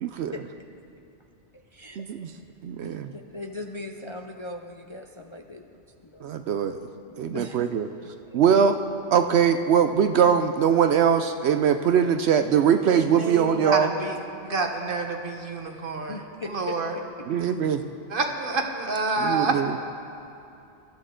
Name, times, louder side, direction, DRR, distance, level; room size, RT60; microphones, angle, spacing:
voice 1, 0.0-0.3 2.0-2.3 2.6-3.1 6.2-6.8 7.2-7.9 8.3-8.8 9.1-13.9 17.3-17.8 19.2-19.7, right 8 dB, 70° right, 8 dB, 0.8 m, -21 dB
voice 2, 1.5-2.0 2.8-6.3 7.1-8.0 8.3-8.4 16.1-17.0, left 2 dB, 35° left, 3 dB, 0.5 m, -40 dB
voice 3, 12.9-14.2 14.4-17.0 18.1-19.6, right 3 dB, 50° right, 4 dB, 1.2 m, -28 dB
22.0 x 13.0 x 3.8 m, 2.8 s
omnidirectional pair, 1.2 m